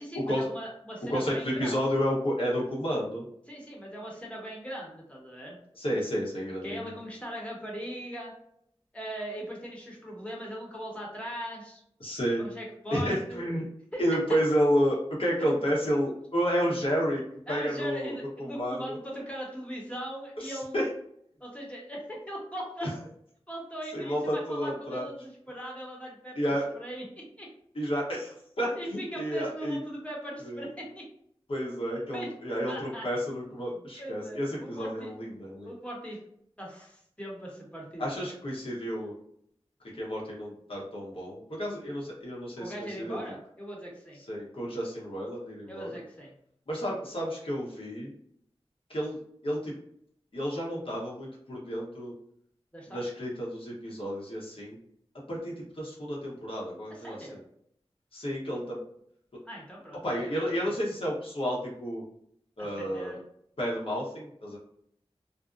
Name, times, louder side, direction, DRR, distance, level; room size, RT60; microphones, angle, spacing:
voice 1, 0.0-2.0 3.5-5.6 6.6-8.3 8.9-11.8 12.4-13.4 13.9-14.0 15.4-15.5 17.5-20.7 21.4-22.9 23.5-27.5 28.7-31.0 32.1-32.3 32.7-33.1 33.7-35.1 35.6-36.2 36.6-38.3 42.6-44.2 45.7-46.3 52.7-53.0 56.9-57.4 59.4-60.7 62.6-63.2, equal, 10° left, -3 dB, 0.9 m, -40 dB
voice 2, 1.1-3.2 5.8-6.9 12.0-12.4 12.9-13.6 14.0-17.2 17.5-19.0 20.4-20.9 22.8-22.9 23.9-25.1 26.4-26.6 27.7-29.8 30.4-30.6 31.5-35.7 38.0-39.1 40.0-43.2 44.3-45.9 46.7-48.1 48.9-49.2 49.4-49.7 50.3-52.1 52.9-54.8 55.3-57.2 58.1-58.8 60.0-62.0 62.6-63.2 63.6-64.6, equal, 60° left, -4 dB, 0.9 m, -31 dB
2.5 x 2.0 x 2.4 m, 0.68 s
wide cardioid pair, 55°, 11 cm